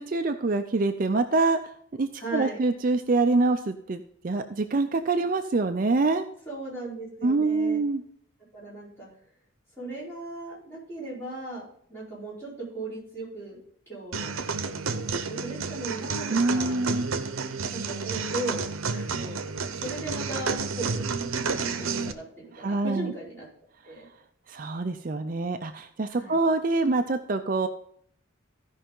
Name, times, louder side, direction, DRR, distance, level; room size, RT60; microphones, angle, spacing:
voice 1, 0.0-1.6 2.0-6.3 7.2-8.0 16.3-17.1 22.5-23.1 24.5-27.7, right 3 dB, 40° right, 7 dB, 0.4 m, -25 dB
voice 2, 2.2-2.6 6.5-7.8 8.5-9.1 9.8-13.6 13.9-16.8 17.7-19.4 19.8-21.0 21.4-23.5 23.8-24.1 26.1-26.4, right 2 dB, 10° left, -9 dB, 4.6 m, -37 dB
sound 1, 14.1-22.1, right 4 dB, 85° right, 0.7 m, -30 dB
15.0 x 5.5 x 3.7 m, 0.64 s
head